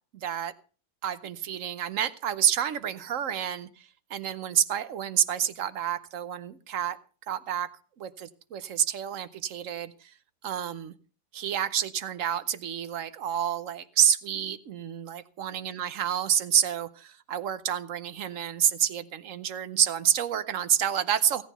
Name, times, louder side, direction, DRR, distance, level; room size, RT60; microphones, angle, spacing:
voice 1, 0.1-0.5 1.0-7.0 7.3-7.7 8.0-10.1 10.4-10.9 11.3-21.4, right 9 dB, 55° right, 15 dB, 1.1 m, -28 dB
16.5 x 9.2 x 5.5 m, 0.38 s
omnidirectional pair, 1.8 m